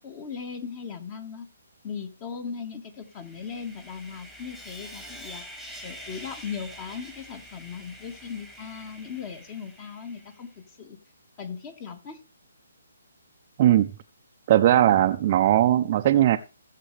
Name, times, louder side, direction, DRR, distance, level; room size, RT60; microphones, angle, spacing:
voice 1, 0.0-1.5 1.8-5.4 5.8-11.0 11.4-12.2, left 6 dB, 25° left, 1.5 m, -38 dB
Sawing, 3.0-10.5, equal, 5° left, 1.7 m, -45 dB
voice 2, 14.5-16.4, right 12 dB, 35° right, 0.5 m, -19 dB
16.5 x 7.4 x 3.3 m
hypercardioid pair, 155°, 0 cm